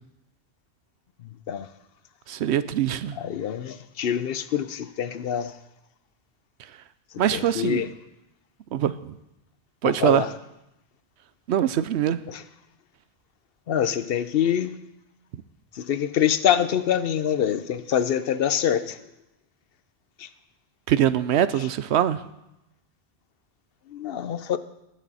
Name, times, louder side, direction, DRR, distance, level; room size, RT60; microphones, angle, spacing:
voice 1, 1.2-1.7 3.2-5.6 7.1-7.9 9.8-10.3 12.3-12.4 13.7-14.8 15.7-19.0 20.2-20.3 21.6-21.7 23.9-24.6, left 9 dB, 65° left, 13 dB, 0.8 m, -25 dB
voice 2, 2.3-3.2 7.2-7.8 8.7-8.9 9.8-10.2 11.5-12.2 20.9-22.2, right 10 dB, 85° right, 14 dB, 0.9 m, -22 dB
20.0 x 7.3 x 4.1 m, 0.87 s
omnidirectional pair, 1.1 m